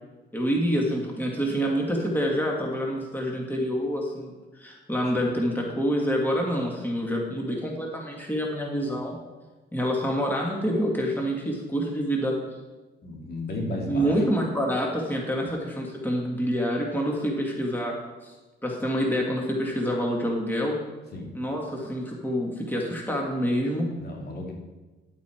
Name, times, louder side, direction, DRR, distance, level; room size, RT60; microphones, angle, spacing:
voice 1, 0.3-9.2 9.7-12.4 13.9-18.0 18.2-18.3 18.6-20.8 21.3-24.0, equal, 10° left, -1 dB, 2.0 m, -27 dB
voice 2, 13.0-14.1 21.1-21.3 24.0-24.5, left 1 dB, 50° left, -1 dB, 2.5 m, -33 dB
10.5 x 8.5 x 4.5 m, 1.2 s
cardioid pair, 95°, 20 cm